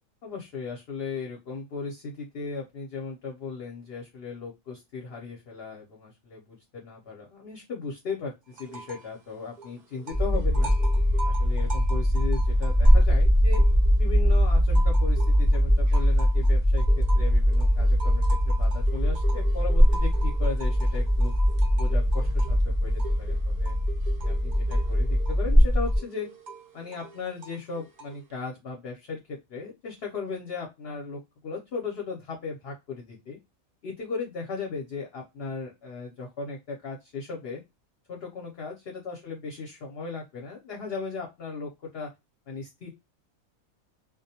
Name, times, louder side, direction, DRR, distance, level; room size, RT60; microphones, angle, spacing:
voice 1, 0.2-10.7 11.2-13.6 14.0-21.3 21.7-23.8 24.2-26.3 26.7-33.4 33.8-37.6 38.1-42.1 42.5-42.9, left 4 dB, 60° left, 0 dB, 0.7 m, -37 dB
sound 1, 8.5-9.2 9.4-14.1 14.5-28.3, right 4 dB, 80° right, 0.4 m, -43 dB
sound 2, 10.1-26.0, equal, 10° left, 0.5 m, -21 dB
2.4 x 2.1 x 2.7 m, 0.22 s
omnidirectional pair, 1.5 m